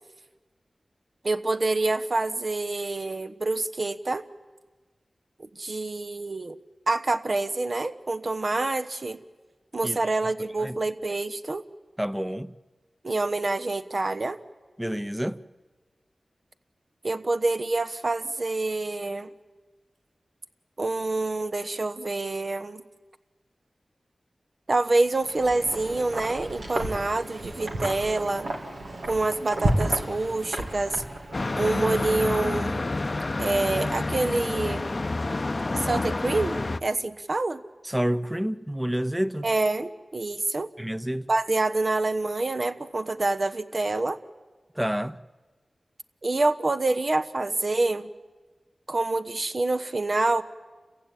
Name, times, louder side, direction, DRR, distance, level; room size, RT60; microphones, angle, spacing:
voice 1, 1.2-4.2 5.6-6.6 6.9-9.2 9.7-11.6 13.0-14.4 17.0-19.3 20.8-22.8 24.7-28.5 29.1-31.0 31.6-32.9 33.4-34.9 35.8-37.6 39.4-40.7 41.3-44.2 46.2-48.1 48.9-50.4, right 2 dB, 55° right, 1.1 m, -26 dB
voice 2, 12.0-12.5 14.8-15.4 37.8-39.5 40.8-41.3 44.8-45.2, equal, 10° right, 0.8 m, -28 dB
Wind, 25.1-31.6, right 1 dB, 90° right, 2.9 m, -32 dB
sound 1, 31.3-36.8, left 2 dB, 45° left, 0.7 m, -28 dB
29.0 x 15.5 x 9.1 m
cardioid pair, 45°, 0 cm